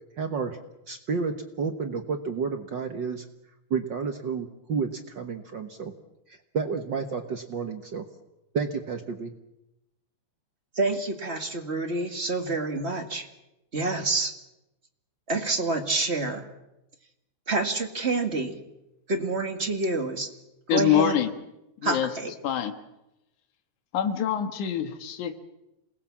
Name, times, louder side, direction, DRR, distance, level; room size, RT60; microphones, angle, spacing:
voice 1, 0.2-0.6 0.9-3.2 3.7-5.9 6.5-8.0 8.5-9.3, right 5 dB, 55° right, 6 dB, 1.4 m, -30 dB
voice 2, 10.7-13.3 13.7-14.3 15.3-16.5 17.5-18.6 19.1-20.3 20.7-21.1 21.8-22.3, right 3 dB, 25° right, 5 dB, 1.5 m, -27 dB
voice 3, 20.7-21.3 21.8-22.1 22.4-22.7 23.9-25.4, left 10 dB, 75° left, 7 dB, 3.0 m, -25 dB
27.5 x 20.0 x 7.4 m, 0.91 s
omnidirectional pair, 3.5 m